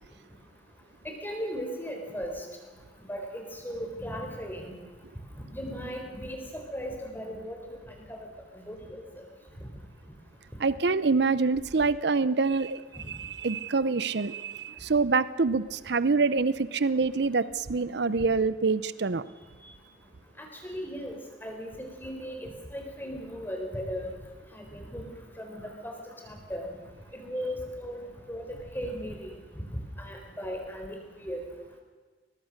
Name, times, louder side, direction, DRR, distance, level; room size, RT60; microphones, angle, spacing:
voice 1, 1.0-2.5 3.1-4.8 5.5-7.8 8.1-8.2 8.5-9.0 9.6-9.7 19.6-19.7 20.4-21.2 21.4-24.1 24.5-25.0 25.4-26.7 27.1-28.0 28.3-29.3 30.0-31.0 31.2-31.4, equal, 10° left, 2 dB, 4.0 m, -37 dB
voice 2, 10.6-12.8 13.1-19.2, right 4 dB, 60° right, 16 dB, 0.6 m, -26 dB
22.0 x 20.0 x 6.5 m, 1.4 s
head